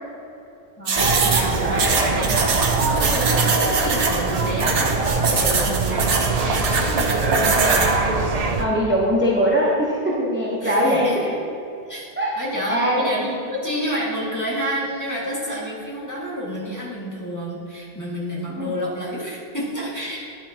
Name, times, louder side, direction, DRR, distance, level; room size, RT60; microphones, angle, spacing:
voice 1, 0.8-4.9 5.3-8.0 10.6-11.4 11.9-12.1 12.4-20.5, equal, 15° left, -6 dB, 1.9 m, -29 dB
sound 1, 0.9-7.9, right 4 dB, 75° right, 1.3 m, -23 dB
sound 2, 1.0-8.7, right 3 dB, 45° right, 0.6 m, -23 dB
voice 2, 8.6-11.3 12.2-12.3 12.7-13.0 18.5-18.7, equal, 10° right, -6 dB, 1.0 m, -21 dB
11.0 x 8.4 x 2.9 m, 2.7 s
omnidirectional pair, 1.2 m